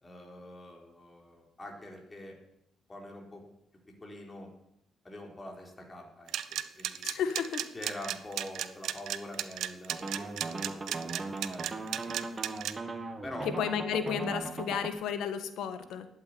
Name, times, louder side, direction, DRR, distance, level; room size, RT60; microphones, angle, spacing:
voice 1, 0.0-2.4 2.9-3.5 4.0-4.5 5.0-7.1 7.7-12.2 13.2-13.5, left 1 dB, 25° left, 0 dB, 4.0 m, -45 dB
sound 1, 6.3-12.7, right 11 dB, 75° right, 0.9 m, -34 dB
voice 2, 7.0-7.6 13.6-16.1, left 7 dB, 80° left, 9 dB, 1.6 m, -32 dB
sound 2, 9.9-14.9, right 3 dB, 30° right, 1.8 m, -38 dB
12.0 x 8.9 x 9.7 m, 0.80 s
cardioid pair, 90°, 0 cm